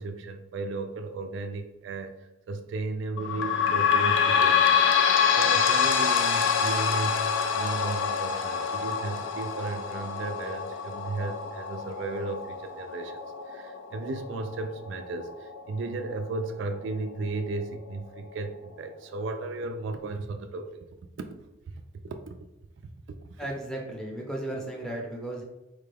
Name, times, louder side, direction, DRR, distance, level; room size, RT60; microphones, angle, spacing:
voice 1, 0.0-4.7 5.3-20.8 21.2-21.3 22.0-22.4, right 3 dB, 60° right, 6 dB, 0.3 m, -35 dB
sound 1, 3.2-16.3 16.9-17.0 17.3-17.4 18.2-18.3, left 7 dB, 60° left, 0.4 m, -26 dB
voice 2, 23.4-25.4, right 1 dB, 5° left, -1 dB, 0.6 m, -35 dB
4.2 x 2.3 x 3.3 m, 0.98 s
head